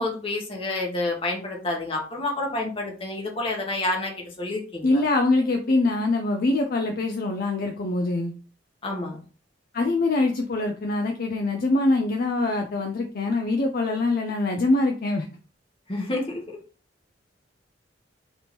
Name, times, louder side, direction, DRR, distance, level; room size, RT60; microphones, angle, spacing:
voice 1, 0.0-4.1 4.4-5.0 8.8-9.2 15.9-16.4, left 2 dB, 30° left, 0 dB, 1.1 m, -28 dB
voice 2, 4.8-8.3 9.7-15.3, left 2 dB, 50° left, 3 dB, 0.5 m, -24 dB
3.4 x 2.9 x 4.1 m, 0.37 s
head